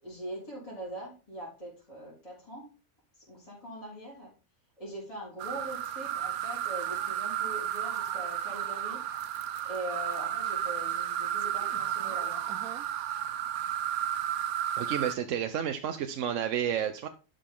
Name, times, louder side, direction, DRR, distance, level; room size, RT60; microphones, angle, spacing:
voice 1, 0.0-2.7 3.1-4.3 4.8-9.0 9.6-12.4, right 1 dB, 25° left, -7 dB, 3.6 m, -42 dB
sound 1, 5.4-15.2, right 10 dB, 90° right, 1.1 m, -33 dB
voice 2, 14.8-17.1, right 9 dB, 70° right, 8 dB, 1.0 m, -31 dB
11.5 x 5.2 x 3.7 m, 0.34 s
omnidirectional pair, 1.5 m